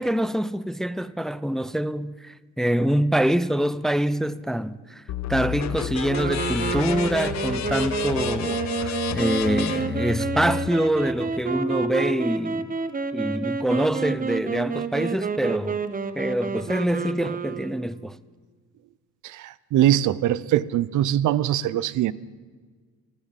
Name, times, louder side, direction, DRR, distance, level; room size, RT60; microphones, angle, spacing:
voice 1, 0.0-5.0 5.3-12.8 13.1-15.8 16.2-18.2, right 1 dB, ahead, 0.5 m, -25 dB
sound 1, 5.1-10.7, left 10 dB, 65° left, 1.1 m, -30 dB
sound 2, 6.1-17.9, right 5 dB, 30° right, 1.0 m, -29 dB
voice 2, 19.2-22.1, right 12 dB, 80° right, 0.7 m, -22 dB
13.5 x 13.5 x 7.3 m
cardioid pair, 90°, 30 cm